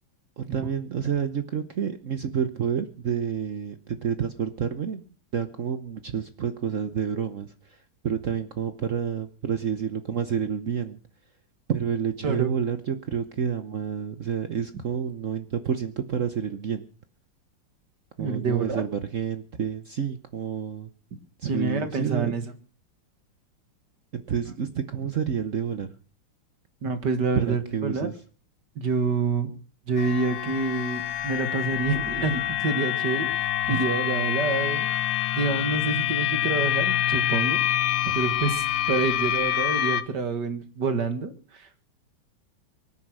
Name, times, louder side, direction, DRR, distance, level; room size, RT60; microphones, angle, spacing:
voice 1, 0.4-5.0 5.3-7.8 8.0-11.0 11.7-16.8 18.2-20.9 21.4-22.3 24.1-25.9 27.3-28.1 33.7-33.8, right 7 dB, 50° right, 10 dB, 1.2 m, -29 dB
voice 2, 18.2-18.8 21.5-22.5 26.8-28.1 28.8-29.5 29.9-34.9 35.3-41.8, right 4 dB, 65° right, 9 dB, 2.4 m, -27 dB
sound 1, 30.0-40.0, left 12 dB, 80° left, 1.7 m, -26 dB
23.5 x 9.8 x 6.3 m, 0.41 s
omnidirectional pair, 2.0 m